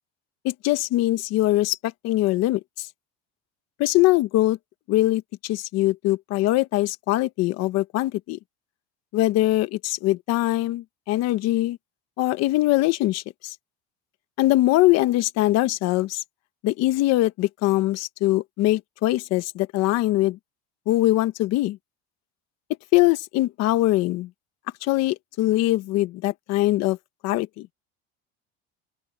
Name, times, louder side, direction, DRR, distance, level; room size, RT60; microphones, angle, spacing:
voice 1, 0.4-2.9 3.8-4.6 4.9-8.4 9.1-11.8 12.2-13.5 14.4-16.2 16.6-20.4 20.9-21.8 22.9-24.3 24.8-27.0 27.2-27.7, left 17 dB, 55° left, 1.2 m, -22 dB
open air
cardioid pair, 155°, 31 cm